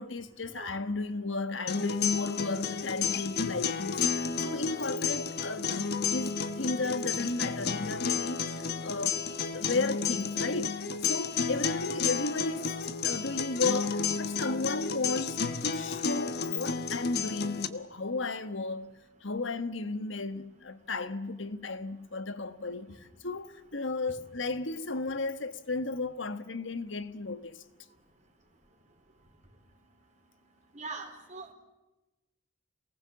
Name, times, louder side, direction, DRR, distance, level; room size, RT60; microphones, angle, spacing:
voice 1, 0.0-5.8 6.0-9.2 9.5-12.7 13.0-27.6, left 3 dB, 70° left, 1.5 m, -34 dB
sound 1, 1.7-17.7, left 6 dB, 55° left, 1.3 m, -32 dB
voice 2, 30.8-31.5, right 4 dB, 40° right, 4.1 m, -41 dB
28.0 x 19.5 x 7.2 m
head